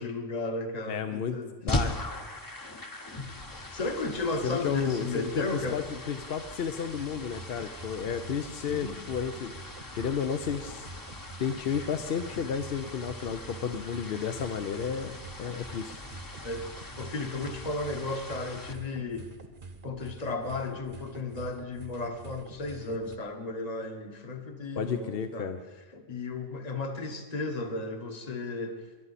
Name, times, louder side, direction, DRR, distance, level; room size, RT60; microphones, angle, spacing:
voice 1, 0.0-1.5 3.2-5.8 8.7-9.0 16.4-19.3 19.8-25.5 25.9-28.9, left 2 dB, 40° left, 5 dB, 1.2 m, -34 dB
voice 2, 0.9-1.4 1.6-2.0 4.4-9.5 9.9-10.9 11.4-16.0 24.8-25.6, left 7 dB, 65° left, 7 dB, 0.8 m, -32 dB
sound 1, 1.7-18.7, left 1 dB, 20° left, 0.8 m, -40 dB
sound 2, 6.9-23.2, right 3 dB, 50° right, 1.2 m, -47 dB
21.0 x 11.0 x 4.1 m, 1.4 s
omnidirectional pair, 1.1 m